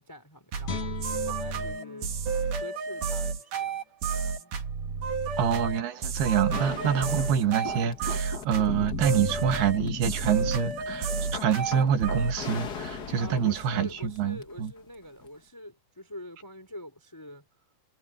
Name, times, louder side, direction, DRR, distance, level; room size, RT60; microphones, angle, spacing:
voice 1, 0.0-2.1 2.5-3.8 4.4-4.6 13.2-17.4, equal, 5° left, 4.0 m, -45 dB
sound 1, 0.5-12.4, right 5 dB, 55° right, 4.0 m, -31 dB
Guitar, 0.6-3.8 4.2-4.4, left 7 dB, 70° left, 5.5 m, -41 dB
voice 2, 5.4-14.7, right 8 dB, 80° right, 4.0 m, -26 dB
sound 2, 6.5-14.7 15.2-15.3, left 6 dB, 85° left, 0.8 m, -39 dB
omnidirectional pair, 4.5 m